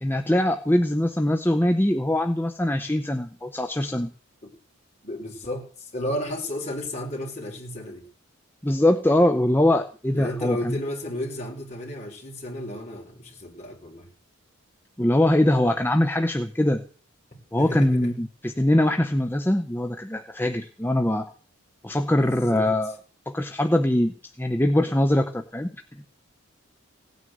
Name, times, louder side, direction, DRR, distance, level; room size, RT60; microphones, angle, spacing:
voice 1, 0.0-4.1 8.6-10.8 15.0-16.8 17.5-21.3 21.8-22.9 23.3-25.7, left 1 dB, 10° left, 7 dB, 0.8 m, -22 dB
voice 2, 5.0-8.0 10.1-14.1 17.5-18.1 22.2-22.7, left 1 dB, 30° left, 0 dB, 5.2 m, -33 dB
17.5 x 9.4 x 7.9 m, 0.40 s
head